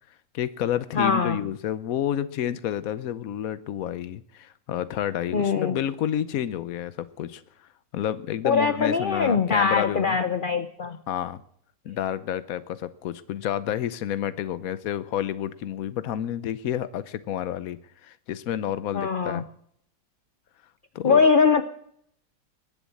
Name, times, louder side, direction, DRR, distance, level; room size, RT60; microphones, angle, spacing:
voice 1, 0.3-10.2 11.1-11.4 11.8-19.4 20.9-21.3, left 10 dB, 60° left, 15 dB, 1.1 m, -30 dB
voice 2, 1.0-1.4 5.3-5.8 8.4-11.0 18.9-19.4 21.0-21.6, left 5 dB, 90° left, 10 dB, 0.4 m, -22 dB
20.5 x 7.3 x 8.5 m, 0.70 s
omnidirectional pair, 1.9 m